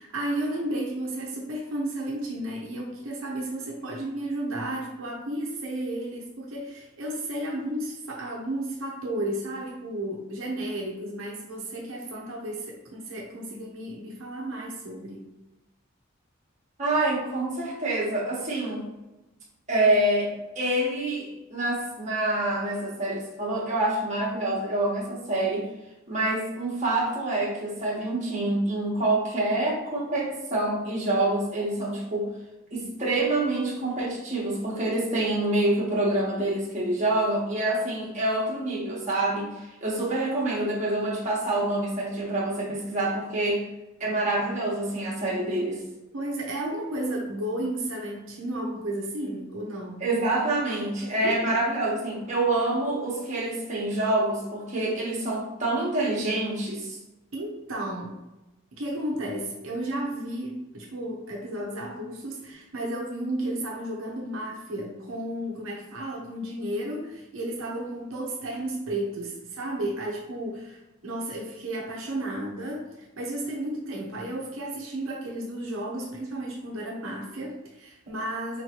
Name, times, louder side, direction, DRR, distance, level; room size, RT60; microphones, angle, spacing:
voice 1, 0.0-15.3 46.1-50.0 51.2-51.4 57.3-58.2 58.7-78.6, right 1 dB, 75° right, -2 dB, 0.8 m, -33 dB
voice 2, 16.8-18.9 19.7-25.7 26.1-32.3 32.7-43.7 44.0-45.8 50.0-57.0, right 2 dB, 35° right, -5 dB, 1.1 m, -26 dB
4.3 x 3.1 x 2.8 m, 1.0 s
head